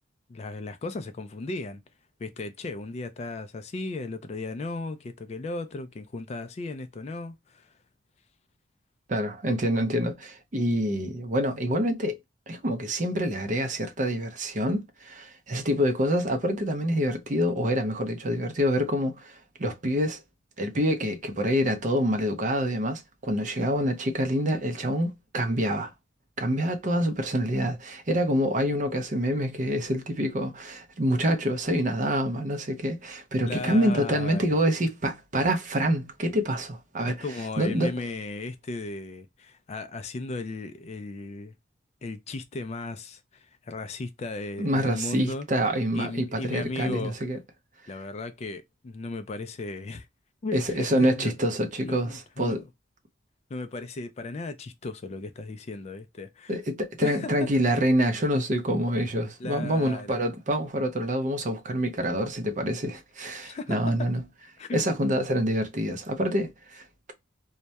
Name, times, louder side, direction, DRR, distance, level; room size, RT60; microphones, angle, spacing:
voice 1, 0.3-1.8 2.2-7.7 33.5-34.6 37.2-41.5 42.0-45.5 45.9-47.2 47.9-50.1 50.4-51.3 51.8-52.7 53.5-56.6 57.0-57.5 59.4-60.2 63.4-64.1 64.6-64.8, left 3 dB, 35° left, 0.3 m, -36 dB
voice 2, 9.1-12.2 12.5-20.2 20.6-25.9 26.4-37.2 37.6-37.9 44.6-47.4 50.5-52.6 56.5-64.2 64.7-66.8, equal, 40° right, 0.5 m, -26 dB
2.2 x 2.1 x 2.7 m
head